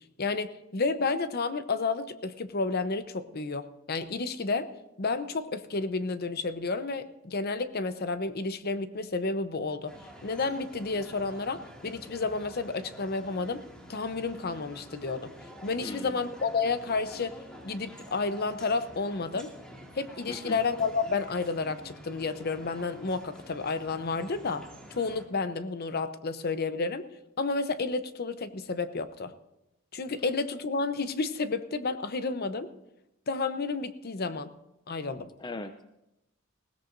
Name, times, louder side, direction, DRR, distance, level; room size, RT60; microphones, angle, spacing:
voice 1, 0.2-4.7 5.0-9.9 10.2-13.6 13.9-15.3 15.6-17.4 17.6-19.5 19.9-24.6 24.9-27.1 27.4-29.3 29.9-32.7 33.3-34.5 34.9-35.3, left 4 dB, 50° left, 11 dB, 0.8 m, -31 dB
sound 1, 9.9-25.3, equal, 5° left, 2.2 m, -49 dB
voice 2, 15.8-16.2 20.3-20.6 35.4-35.9, left 2 dB, 20° left, 9 dB, 0.5 m, -39 dB
20.0 x 16.5 x 2.6 m, 0.90 s
head